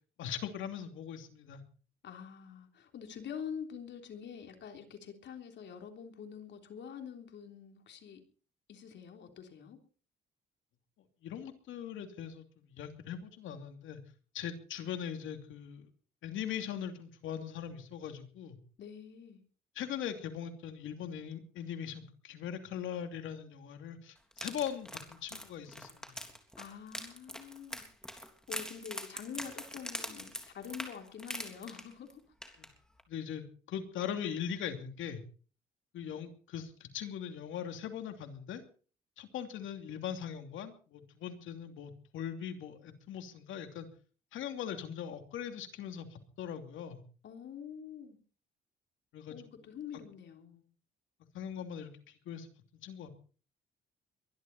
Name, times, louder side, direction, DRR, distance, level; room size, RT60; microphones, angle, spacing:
voice 1, 0.2-1.6 11.2-14.0 14.3-15.9 16.2-18.6 19.7-26.2 32.6-32.7 33.1-35.2 35.9-38.6 39.2-43.9 44.3-47.0 49.1-49.4 51.3-52.5 52.8-53.1, left 9 dB, 80° left, 6 dB, 2.8 m, -40 dB
voice 2, 2.0-8.2 8.7-9.8 18.8-19.4 26.6-27.9 28.5-32.2 47.2-48.2 49.3-50.6, left 7 dB, 65° left, 5 dB, 3.5 m, -46 dB
sound 1, 24.3-32.1 32.4-32.7 33.0-33.1, equal, 5° left, 3.5 m, -43 dB
23.0 x 12.0 x 4.3 m, 0.39 s
cardioid pair, 90°, 20 cm